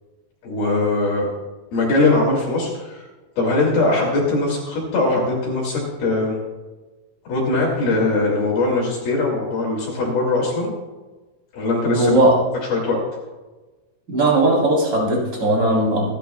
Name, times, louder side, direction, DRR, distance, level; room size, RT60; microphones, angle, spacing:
voice 1, 0.4-1.3 1.7-3.1 3.4-6.4 7.3-10.7 11.5-12.2 12.7-13.0, left 2 dB, 65° left, -2 dB, 4.1 m, -21 dB
voice 2, 11.9-12.4 14.1-16.1, right 1 dB, 25° right, -2 dB, 3.7 m, -17 dB
27.0 x 11.0 x 2.3 m, 1.2 s
omnidirectional pair, 5.0 m